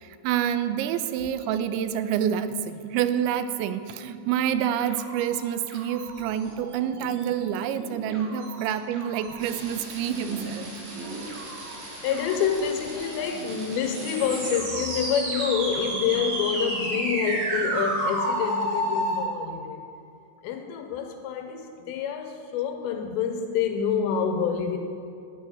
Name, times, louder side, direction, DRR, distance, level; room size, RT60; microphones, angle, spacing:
voice 1, 0.0-10.7, right 9 dB, 85° right, 11 dB, 2.7 m, -27 dB
sound 1, 4.9-17.7, right 2 dB, 65° right, 3.5 m, -42 dB
sound 2, 9.4-19.2, right 1 dB, 50° right, 4.9 m, -31 dB
voice 2, 12.0-19.8 20.4-24.8, left 7 dB, 80° left, 5 dB, 2.7 m, -27 dB
13.0 x 5.7 x 9.0 m, 2.4 s
omnidirectional pair, 5.5 m